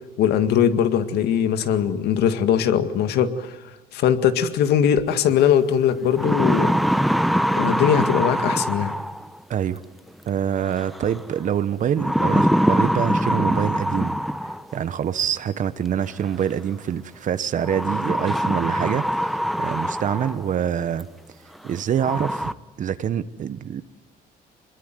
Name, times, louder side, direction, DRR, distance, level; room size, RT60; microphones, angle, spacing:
voice 1, 0.2-3.6 3.9-6.7 7.5-8.9, left 8 dB, 75° left, 9 dB, 2.0 m, -20 dB
sound 1, 5.4-5.5 5.9-9.4 10.8-11.2 12.0-14.8 16.0-16.1 17.6-20.5 21.0-21.1 21.6-21.7 22.0-22.5, equal, ahead, 0.9 m, -23 dB
voice 2, 9.5-9.8 10.2-14.1 14.7-21.1 21.6-23.8, right 9 dB, 50° right, 13 dB, 1.1 m, -25 dB
25.5 x 22.0 x 9.3 m, 1.1 s
cardioid pair, 110°, 17 cm